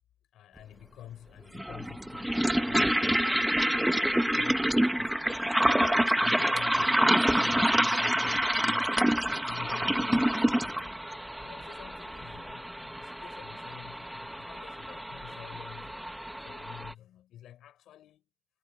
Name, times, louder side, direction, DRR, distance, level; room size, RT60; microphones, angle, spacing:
voice 1, 0.3-5.3 5.6-9.0 9.5-16.0 16.4-18.3, left 11 dB, 80° left, 6.6 m, -49 dB
sound 1, 0.6-0.7 1.5-16.9, right 1 dB, 5° right, 1.2 m, -27 dB
cardioid pair, 90°, 0 cm